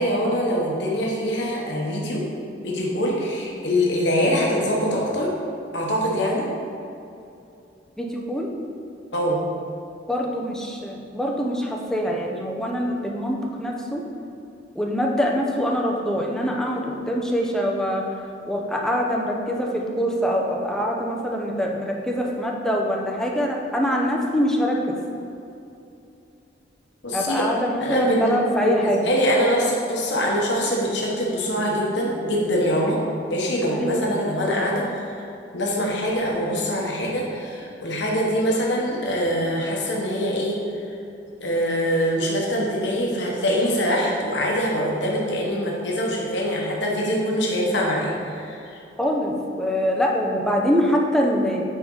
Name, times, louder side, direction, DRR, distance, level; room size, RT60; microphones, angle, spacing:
voice 1, 0.0-2.2 2.6-5.3 5.7-6.4 9.1-9.4 27.0-27.4 27.8-33.0 33.3-35.2 35.5-40.6 41.4-48.8, equal, 70° left, -3 dB, 1.2 m, -24 dB
voice 2, 8.0-8.5 10.1-14.0 14.8-18.0 18.5-24.9 27.1-29.0 33.7-34.0 49.0-51.6, equal, 5° left, -1 dB, 0.7 m, -24 dB
9.1 x 3.9 x 3.9 m, 2.7 s
head